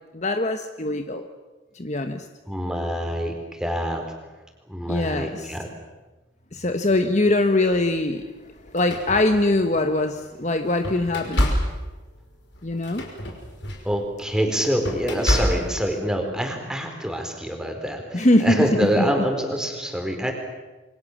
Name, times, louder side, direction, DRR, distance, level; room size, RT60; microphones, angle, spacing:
voice 1, 0.1-1.3 1.7-2.3 4.9-5.6 6.5-8.3 8.7-11.5 12.6-13.0 18.1-19.0, left 2 dB, 35° left, 7 dB, 1.2 m, -22 dB
voice 2, 2.5-4.1 4.7-5.7 13.8-20.3, equal, 5° right, 3 dB, 4.3 m, -26 dB
sound 1, 7.7-7.9 8.6-9.9 10.4-15.9, equal, 65° left, 5.7 m, -28 dB
28.0 x 24.5 x 7.4 m, 1.2 s
head